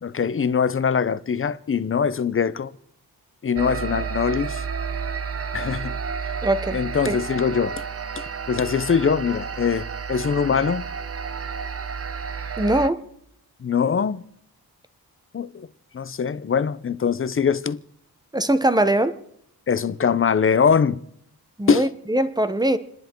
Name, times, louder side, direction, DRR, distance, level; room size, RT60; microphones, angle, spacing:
voice 1, 0.0-2.7 3.4-4.6 5.5-5.9 6.7-7.8 8.2-10.9 13.6-14.2 15.3-15.7 15.9-17.8 19.7-21.0 21.7-21.9, left 6 dB, 35° left, 0.7 m, -22 dB
sound 1, 3.6-12.9, right 6 dB, 40° right, 0.9 m, -31 dB
voice 2, 6.4-6.8 7.1-7.2 12.6-13.0 18.3-19.2 21.6-22.8, right 1 dB, 10° right, 1.0 m, -21 dB
28.5 x 10.5 x 4.5 m
wide cardioid pair, 115°, 38 cm